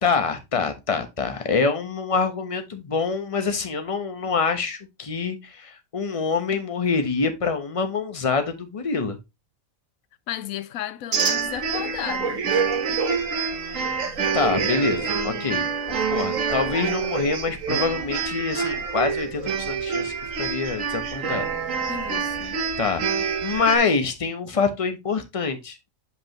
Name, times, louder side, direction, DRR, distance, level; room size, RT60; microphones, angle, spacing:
voice 1, 0.0-9.2 13.5-21.5 22.8-25.9, left 4 dB, 25° left, 1.0 m, -26 dB
voice 2, 10.3-12.4 21.9-22.6, left 12 dB, 85° left, 1.0 m, -33 dB
sound 1, 11.1-23.8, right 6 dB, 70° right, 1.5 m, -26 dB
8.1 x 5.4 x 3.0 m
omnidirectional pair, 1.4 m